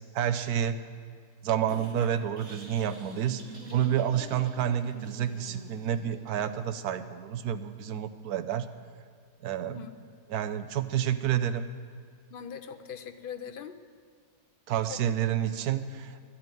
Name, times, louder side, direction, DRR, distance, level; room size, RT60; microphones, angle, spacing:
voice 1, 0.1-0.8 1.4-3.4 3.7-8.7 9.4-9.8 10.3-11.7 14.7-16.3, right 10 dB, 70° right, 11 dB, 1.2 m, -29 dB
sound 1, 1.7-6.7, right 1 dB, 50° right, 2.6 m, -47 dB
voice 2, 9.7-10.1 12.3-13.7 14.9-15.0, left 7 dB, 55° left, 9 dB, 0.6 m, -41 dB
12.0 x 8.7 x 9.0 m, 2.1 s
omnidirectional pair, 1.7 m